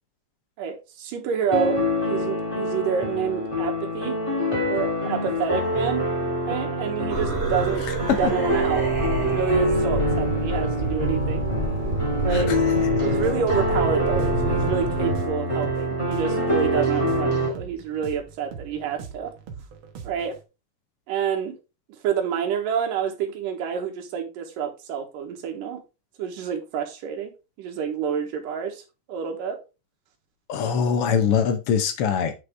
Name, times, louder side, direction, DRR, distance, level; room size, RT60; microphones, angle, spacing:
voice 1, 0.6-1.8 2.1-4.2 4.7-6.1 6.4-8.9 9.2-11.5 12.2-12.6 13.0-19.3 20.0-20.4 21.1-21.6 21.9-25.8 26.2-27.3 27.6-28.8 29.1-29.6, right 7 dB, 85° right, 2.9 m, -28 dB
sound 1, 1.5-17.5, equal, 10° left, 1.7 m, -25 dB
sound 2, 7.1-15.3, right 2 dB, 20° right, 2.1 m, -28 dB
sound 3, 12.8-20.4, right 6 dB, 65° right, 1.3 m, -42 dB
voice 2, 30.5-32.3, left 7 dB, 70° left, 1.4 m, -22 dB
8.1 x 5.4 x 3.3 m
omnidirectional pair, 3.8 m